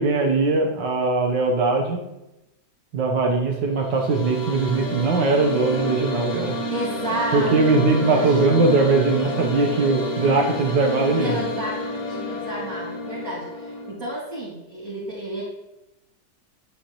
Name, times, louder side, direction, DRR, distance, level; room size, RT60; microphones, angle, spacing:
voice 1, 0.0-2.0 2.9-6.6 7.3-11.4, right 3 dB, 85° right, 2 dB, 1.8 m, -20 dB
sound 1, 3.7-13.9, left 2 dB, 55° left, 1.8 m, -30 dB
voice 2, 6.7-8.4 11.2-15.4, right 2 dB, 50° right, -8 dB, 2.9 m, -31 dB
10.0 x 7.2 x 3.1 m, 0.92 s
omnidirectional pair, 1.9 m